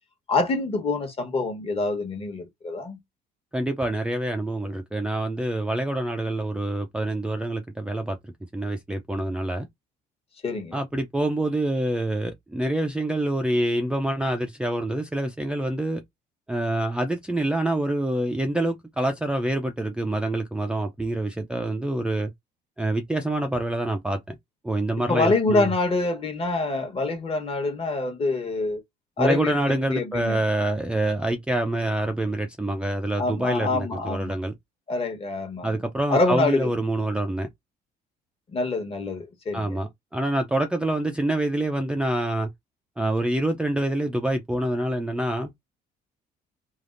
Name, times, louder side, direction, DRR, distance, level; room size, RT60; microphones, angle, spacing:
voice 1, 0.3-3.0 10.4-10.7 25.1-28.8 29.2-30.4 33.2-34.3 34.9-35.7 36.1-36.7 38.5-39.8, left 3 dB, 35° left, 1.1 m, -26 dB
voice 2, 3.5-8.2 8.5-9.7 10.7-16.0 16.5-22.3 22.8-24.4 24.6-25.7 29.2-34.5 35.6-37.5 39.5-42.5 43.0-45.5, right 1 dB, 5° right, 0.4 m, -26 dB
3.4 x 2.4 x 2.4 m
cardioid pair, 110°, 17 cm